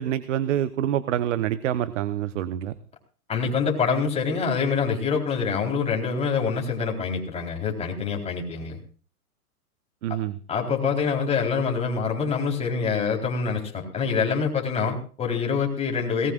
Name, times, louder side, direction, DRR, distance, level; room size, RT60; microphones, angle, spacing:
voice 1, 0.0-2.7 10.0-10.4, right 11 dB, 55° right, 14 dB, 1.1 m, -26 dB
voice 2, 3.3-8.8 10.1-10.2 10.5-16.3, left 5 dB, 15° left, 0 dB, 4.1 m, -25 dB
20.5 x 19.0 x 2.5 m, 0.40 s
hypercardioid pair, 130°, 44 cm